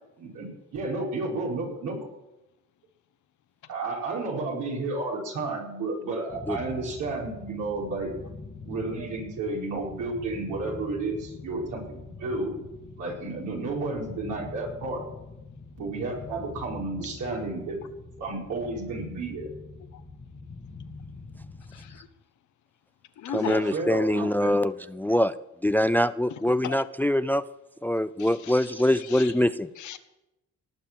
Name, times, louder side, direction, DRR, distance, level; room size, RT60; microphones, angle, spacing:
voice 1, 0.2-2.0 3.7-8.1 8.6-12.5 13.0-15.0 15.8-17.8 18.2-19.5 23.3-24.5, right 3 dB, 80° right, -2 dB, 4.9 m, -32 dB
sound 1, 6.3-22.0, left 3 dB, 30° left, 1.4 m, -44 dB
voice 2, 21.7-22.1 23.2-23.6 26.6-26.8 28.2-29.3 29.8-30.0, left 10 dB, 75° left, 9 dB, 1.3 m, -38 dB
voice 3, 23.3-25.3 25.6-27.4 27.8-29.7, left 1 dB, 5° left, 15 dB, 0.4 m, -24 dB
18.5 x 6.9 x 7.5 m, 0.94 s
cardioid pair, 90°, 30 cm